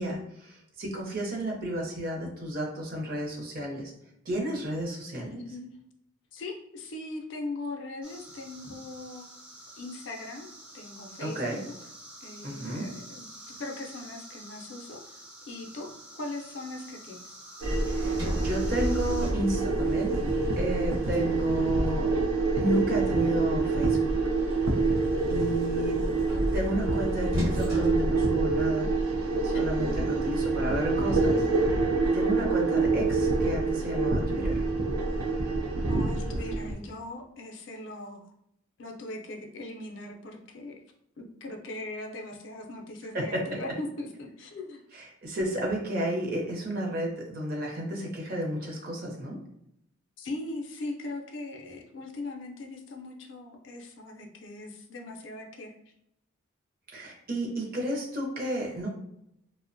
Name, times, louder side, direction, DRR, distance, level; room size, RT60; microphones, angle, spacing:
voice 1, 0.0-3.9 4.3-5.4 11.2-11.6 12.4-12.9 17.9-20.2 20.6-22.1 22.5-24.2 24.7-24.9 25.3-26.0 26.5-28.9 29.4-31.5 31.7-34.6 43.1-43.6 44.9-49.4 56.9-58.9, right 1 dB, 45° right, -1 dB, 0.6 m, -32 dB
voice 2, 5.3-5.8 6.3-9.3 9.8-10.5 10.7-11.7 12.2-13.3 13.6-15.2 15.5-15.9 16.2-17.2 25.7-25.9 29.5-29.9 35.9-38.3 38.8-40.8 41.2-44.8 50.2-55.7, left 2 dB, 60° left, 3 dB, 0.4 m, -40 dB
sound 1, 8.0-19.3, right 1 dB, 5° right, 0.3 m, -48 dB
Sliding door, 17.6-22.5 24.1-29.0, equal, 70° right, 1.0 m, -35 dB
sound 2, 17.6-36.7, right 3 dB, 90° right, 0.5 m, -27 dB
2.8 x 2.0 x 2.5 m, 0.77 s
head